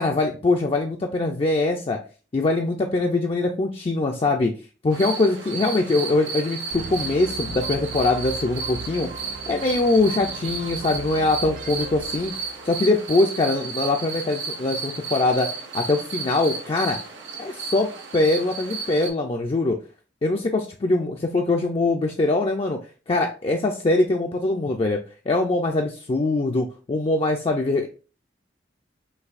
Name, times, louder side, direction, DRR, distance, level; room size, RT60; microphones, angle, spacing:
voice 1, 0.0-2.0 2.3-4.5 4.8-17.0 17.4-19.8 20.2-22.8 23.1-27.9, left 2 dB, 30° left, 2 dB, 0.4 m, -23 dB
sound 1, 4.9-19.1, right 4 dB, 85° right, 1.0 m, -33 dB
sound 2, 6.7-12.9, right 3 dB, 45° right, 0.4 m, -39 dB
6.4 x 2.7 x 2.4 m, 0.35 s
head